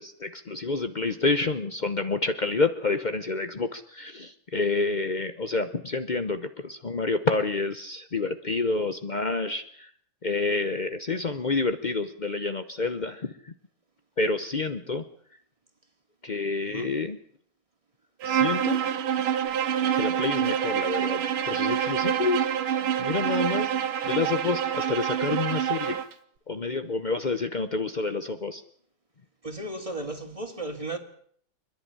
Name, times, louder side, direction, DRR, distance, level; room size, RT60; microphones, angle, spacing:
voice 1, 0.0-9.9 10.2-13.5 14.2-15.1 16.2-17.2 18.2-18.8 19.9-22.5 23.0-23.7 24.0-26.0 26.5-28.6, left 3 dB, 80° left, 0.4 m, -28 dB
Bowed string instrument, 18.2-26.1, right 9 dB, 90° right, 2.2 m, -26 dB
voice 2, 29.4-31.0, right 2 dB, 15° right, 2.3 m, -35 dB
27.0 x 11.0 x 10.0 m
omnidirectional pair, 2.4 m